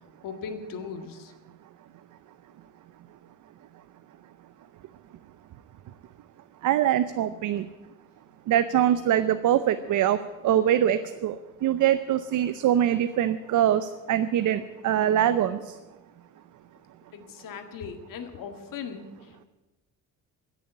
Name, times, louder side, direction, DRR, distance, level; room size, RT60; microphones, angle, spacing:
voice 1, 0.2-1.3 17.1-19.1, left 6 dB, 80° left, 7 dB, 1.9 m, -38 dB
voice 2, 6.6-7.7 8.5-10.2 10.4-15.6, right 11 dB, 65° right, 12 dB, 0.7 m, -23 dB
16.0 x 7.1 x 10.0 m, 1.2 s
cardioid pair, 135°, 32 cm